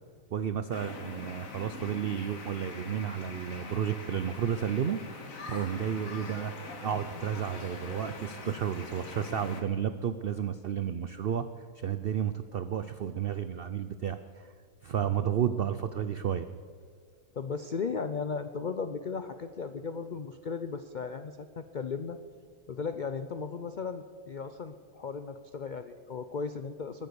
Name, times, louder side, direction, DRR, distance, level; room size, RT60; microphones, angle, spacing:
voice 1, 0.3-5.0 5.5-6.5 6.8-11.5 11.7-14.5 14.8-16.5, right 8 dB, 85° right, 11 dB, 0.5 m, -32 dB
sound 1, 0.7-9.6, left 3 dB, 55° left, 2.1 m, -43 dB
voice 2, 17.3-22.2 22.7-27.1, left 5 dB, 80° left, 10 dB, 0.4 m, -36 dB
21.5 x 9.0 x 6.9 m, 2.1 s
omnidirectional pair, 1.7 m